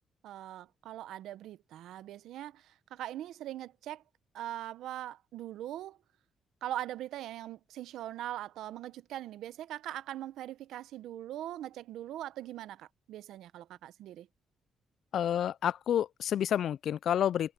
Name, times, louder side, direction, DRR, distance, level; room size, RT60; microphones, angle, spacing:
voice 1, 0.2-4.0 4.3-6.0 6.6-14.3, right 13 dB, 80° right, 0.8 m, -41 dB
voice 2, 15.1-17.5, left 10 dB, 65° left, 0.3 m, -29 dB
cardioid pair, 90°, 0 cm